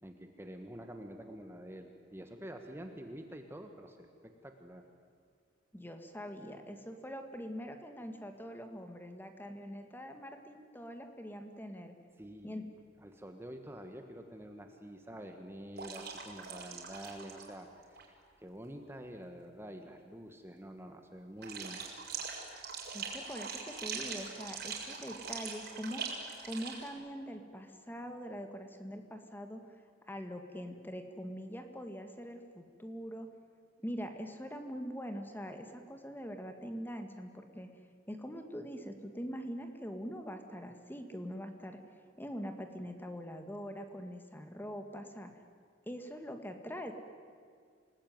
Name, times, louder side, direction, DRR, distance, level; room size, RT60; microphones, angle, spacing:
voice 1, 0.0-4.8 12.2-12.7 13.0-21.8, right 1 dB, 15° right, 5 dB, 1.5 m, -47 dB
voice 2, 5.7-11.9 12.4-12.6 22.9-29.6 30.1-33.3 33.8-37.7 38.1-41.8 42.2-45.3 45.9-46.9, equal, 10° left, 6 dB, 1.9 m, -43 dB
sound 1, 15.8-17.5 17.8-18.0 21.4-26.9, right 5 dB, 55° right, 5.1 m, -42 dB
28.0 x 19.0 x 9.5 m, 2.1 s
head